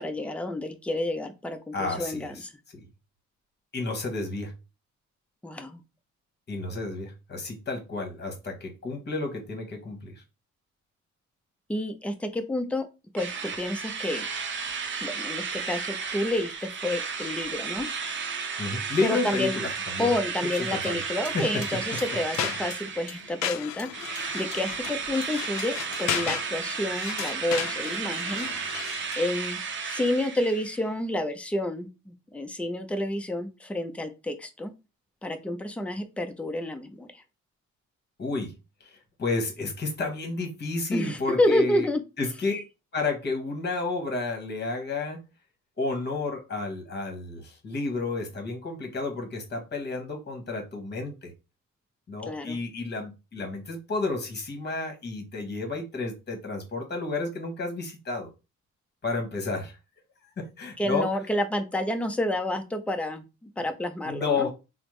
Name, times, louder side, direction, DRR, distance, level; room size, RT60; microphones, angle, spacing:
voice 1, 0.0-2.5 5.4-5.8 11.7-12.9 13.1-14.3 15.0-17.9 19.0-19.6 20.0-28.5 29.2-29.6 29.8-34.7 35.2-37.2 40.9-42.0 52.2-52.6 60.8-63.2 63.6-64.5, left 1 dB, 5° left, 6 dB, 0.4 m, -29 dB
voice 2, 1.7-2.5 2.7-2.9 3.7-4.5 6.5-10.2 18.6-20.1 20.5-21.0 21.3-22.0 22.3-22.5 38.2-38.5 38.8-41.9 42.2-42.6 42.9-45.2 45.8-51.3 52.1-58.3 59.0-59.8 60.4-61.1 64.0-64.5, left 3 dB, 35° left, 3 dB, 1.1 m, -31 dB
Drill, 13.2-23.5 23.9-30.8, right 5 dB, 40° right, 0.6 m, -33 dB
sound 1, 21.2-29.3, left 9 dB, 65° left, 0.5 m, -35 dB
3.3 x 2.0 x 3.1 m, 0.28 s
cardioid pair, 90°, 30 cm